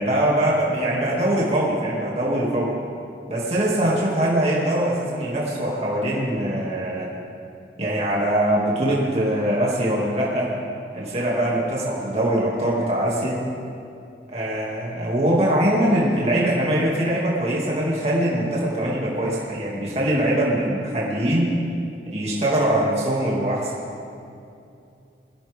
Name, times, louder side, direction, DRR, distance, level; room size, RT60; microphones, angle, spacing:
voice 1, 0.0-2.7 3.3-7.1 7.8-10.5 10.9-13.4 14.3-21.5 22.1-23.7, right 1 dB, 35° right, -5 dB, 2.7 m, -22 dB
22.0 x 15.5 x 3.7 m, 2.6 s
head